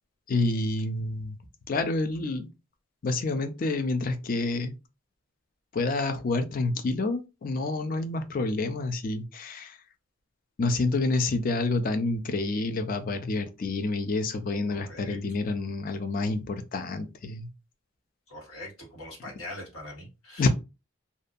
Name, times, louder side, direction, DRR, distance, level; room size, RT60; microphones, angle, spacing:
voice 1, 0.3-1.3 1.7-2.5 3.0-4.7 5.7-9.7 10.6-17.5 20.4-20.5, left 3 dB, 40° left, 0.3 m, -28 dB
voice 2, 14.7-15.2 18.3-20.5, left 1 dB, 85° left, 1.5 m, -42 dB
2.6 x 2.2 x 2.5 m
head